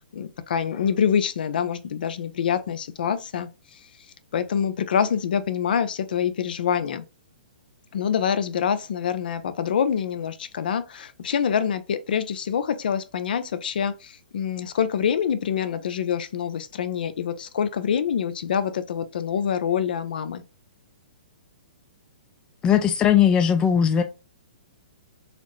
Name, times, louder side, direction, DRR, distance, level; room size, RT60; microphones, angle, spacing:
voice 1, 0.1-3.5 4.3-7.0 7.9-20.4, left 8 dB, 70° left, 0.5 m, -26 dB
voice 2, 22.6-24.0, left 8 dB, 15° left, 0.3 m, -18 dB
4.0 x 2.1 x 3.0 m
hypercardioid pair, 150°, 5 cm